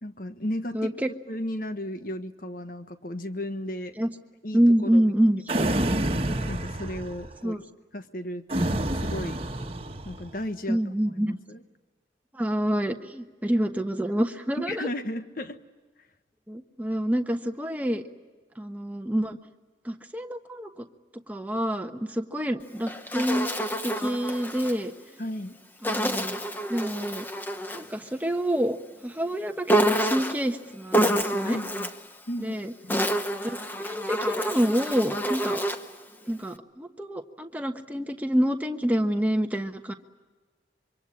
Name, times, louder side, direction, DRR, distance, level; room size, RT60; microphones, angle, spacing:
voice 1, 0.0-1.0 1.3-4.0 4.4-5.1 5.6-5.8 6.5-7.6 7.9-9.4 10.0-10.8 11.2-11.6 14.6-15.6 25.2-25.6 31.4-31.9 32.3-32.6 32.8-33.0, left 1 dB, 50° left, 9 dB, 1.4 m, -34 dB
voice 2, 0.7-1.1 4.0-4.1 4.5-5.4 7.4-7.6 10.7-11.4 12.3-14.9 16.5-18.0 18.6-19.4 19.8-20.8 21.3-23.5 23.8-24.9 25.8-26.4 26.7-27.3 27.7-28.8 29.0-31.6 32.4-32.7 33.4-35.6 36.3-39.9, equal, 10° right, 5 dB, 1.2 m, -27 dB
sound 1, 5.5-7.4 8.5-10.3, right 1 dB, 30° right, 1.5 m, -28 dB
Insect, 22.6-24.8 25.8-27.9 29.7-30.5 30.9-32.1 32.7-35.9, right 1 dB, 10° left, 1.0 m, -28 dB
26.0 x 24.5 x 8.6 m, 1.3 s
head